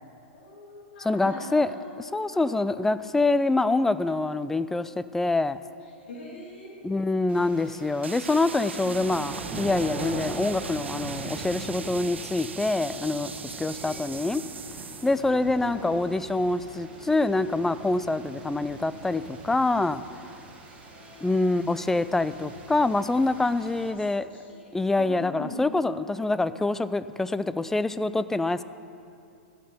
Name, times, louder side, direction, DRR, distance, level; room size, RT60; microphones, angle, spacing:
voice 1, 0.3-1.9 2.3-2.8 5.8-6.9 8.6-9.1 13.3-14.1 14.9-16.0 20.6-21.7 23.8-24.7 25.0-25.6, left 2 dB, 70° left, -3 dB, 2.8 m, -44 dB
voice 2, 1.0-1.7 2.0-5.6 6.8-14.4 15.0-20.0 21.2-24.3 24.7-28.6, left 2 dB, 5° left, 14 dB, 0.3 m, -25 dB
sound 1, 7.3-23.9, right 3 dB, 20° right, 1.7 m, -41 dB
sound 2, 8.0-15.2, right 6 dB, 85° right, 0.6 m, -40 dB
15.0 x 6.7 x 5.4 m, 2.6 s
hypercardioid pair, 115°, 6 cm